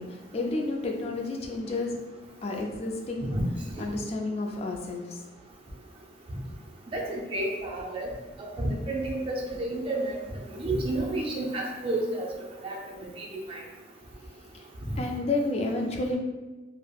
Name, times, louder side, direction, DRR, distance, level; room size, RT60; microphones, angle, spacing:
voice 1, 0.0-2.0 2.4-3.4 3.8-5.2 14.5-14.6 15.0-16.2, left 2 dB, 35° left, 1 dB, 0.3 m, -31 dB
voice 2, 6.9-8.1 8.6-10.2 10.6-12.3 12.6-12.8 13.2-13.6, right 1 dB, 30° right, -2 dB, 0.4 m, -30 dB
3.2 x 2.0 x 2.3 m, 1.2 s
head